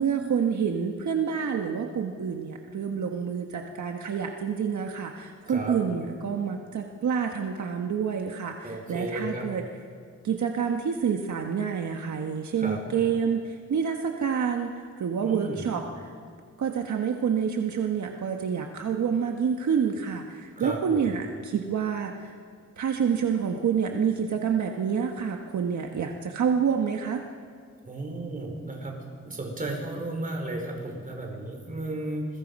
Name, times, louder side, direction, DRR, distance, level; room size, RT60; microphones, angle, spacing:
voice 1, 0.0-9.6 10.2-16.1 16.6-22.4 22.8-27.2, right 7 dB, 70° right, 3 dB, 1.5 m, -28 dB
voice 2, 8.6-9.5 12.6-12.8 15.2-15.7 20.6-21.1 27.8-28.9 29.2-32.3, right 2 dB, 25° right, 1 dB, 4.7 m, -34 dB
28.5 x 22.0 x 5.5 m, 2.1 s
wide cardioid pair, 155°, 31 cm